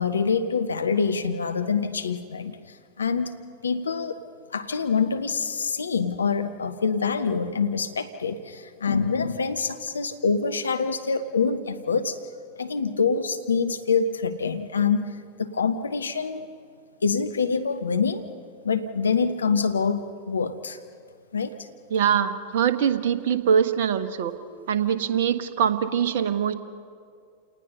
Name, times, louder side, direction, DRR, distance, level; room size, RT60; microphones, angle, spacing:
voice 1, 0.0-3.4 3.6-4.2 4.5-12.2 12.6-16.5 17.0-18.3 18.6-20.8 21.3-21.7, left 5 dB, 70° left, 10 dB, 0.9 m, -25 dB
voice 2, 21.9-24.3 24.7-26.5, right 8 dB, 55° right, 11 dB, 1.2 m, -23 dB
29.0 x 19.0 x 5.5 m, 2.3 s
figure-of-eight pair, 90°, 0 cm